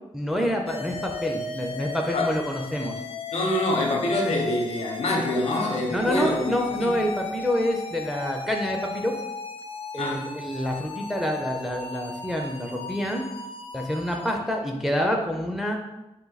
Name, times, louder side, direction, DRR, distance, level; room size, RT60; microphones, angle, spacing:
voice 1, 0.1-3.0 5.9-9.1 9.9-13.2 13.7-15.8, equal, 5° right, 1 dB, 0.5 m, -27 dB
sound 1, 0.7-14.3, left 3 dB, 55° left, 0.4 m, -36 dB
voice 2, 3.3-6.5 6.8-6.9 10.0-10.3, left 1 dB, 75° left, 1 dB, 0.8 m, -25 dB
3.9 x 2.6 x 4.0 m, 0.95 s
wide cardioid pair, 130°, 11 cm